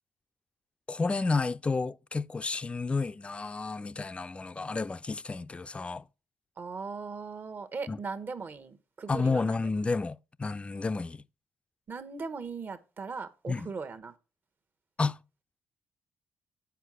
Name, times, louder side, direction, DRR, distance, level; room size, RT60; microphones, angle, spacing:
voice 1, 0.9-6.0 7.9-8.0 9.1-11.2 13.5-13.7 15.0-15.2, left 4 dB, 25° left, 0.4 m, -31 dB
voice 2, 6.6-9.6 11.9-14.1, right 4 dB, 45° right, 1.1 m, -39 dB
8.1 x 4.9 x 6.1 m
cardioid pair, 75°, 5 cm